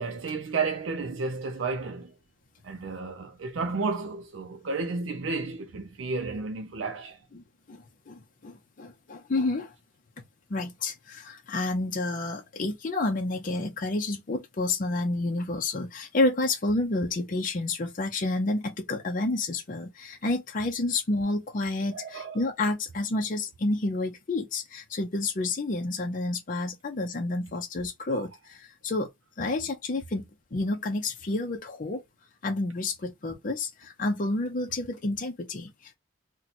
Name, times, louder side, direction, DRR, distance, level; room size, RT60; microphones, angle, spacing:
voice 1, 0.0-2.1 2.6-7.2 21.9-22.4 28.1-28.3, right 4 dB, 75° right, 0.5 m, -32 dB
voice 2, 7.3-9.7 10.5-29.1 29.4-32.0 32.4-35.9, left 2 dB, 45° left, 0.5 m, -30 dB
2.8 x 2.2 x 4.0 m
head